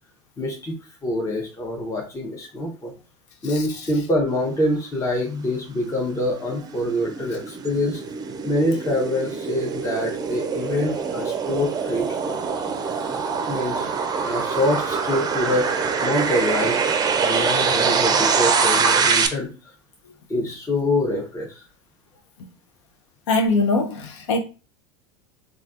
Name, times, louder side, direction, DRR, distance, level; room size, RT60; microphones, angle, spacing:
voice 1, 0.4-0.8 1.0-2.9 3.4-8.0 8.4-12.4 13.5-13.9 14.2-15.7 16.0-19.5 20.3-21.6, left 1 dB, 20° left, 0.7 m, -25 dB
sound 1, 6.1-19.3, right 5 dB, 25° right, 0.5 m, -24 dB
voice 2, 23.3-24.4, left 3 dB, 75° left, 0.7 m, -21 dB
3.2 x 2.3 x 2.5 m
hypercardioid pair, 85°, 16 cm